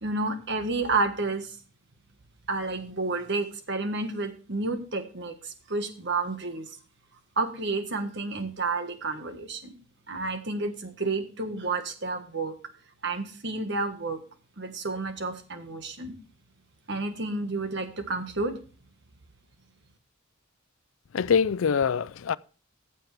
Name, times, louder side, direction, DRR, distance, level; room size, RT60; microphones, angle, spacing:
voice 1, 0.0-1.5 2.5-6.7 7.4-9.8 10.1-12.5 13.0-14.2 14.6-16.2 16.9-18.5, right 3 dB, 55° right, 1.5 m, -30 dB
voice 2, 21.1-22.4, left 6 dB, 70° left, 0.4 m, -24 dB
15.0 x 7.4 x 3.4 m
head